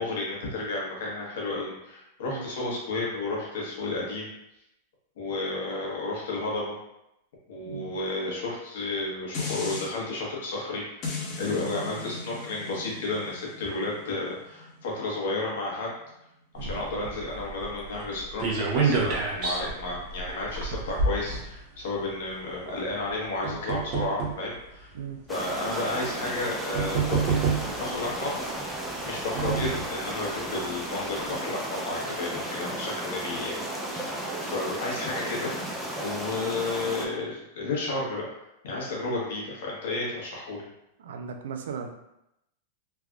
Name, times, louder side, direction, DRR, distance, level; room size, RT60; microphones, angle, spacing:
voice 1, 0.0-4.3 5.2-6.7 7.5-11.1 11.4-15.9 16.5-24.9 25.3-28.6 29.0-33.6 33.9-35.6 36.0-38.3 38.6-40.7, left 2 dB, 75° left, -4 dB, 1.1 m, -32 dB
voice 2, 7.7-8.0 16.6-16.8 24.9-25.2 41.0-41.9, right 7 dB, 85° right, 5 dB, 0.4 m, -37 dB
sound 1, 9.3-9.9 11.0-16.2 16.6-16.7, left 3 dB, 45° left, 0.8 m, -38 dB
sound 2, 16.6-22.0 22.9-24.4 25.2-25.3 26.3-26.4 26.7-27.9 28.9-30.0 30.4-30.5 30.8-30.9, right 4 dB, 50° right, 0.7 m, -29 dB
sound 3, 25.3-37.1, right 1 dB, 5° right, 0.5 m, -34 dB
3.3 x 2.4 x 2.3 m, 0.84 s
supercardioid pair, 130°, 0 cm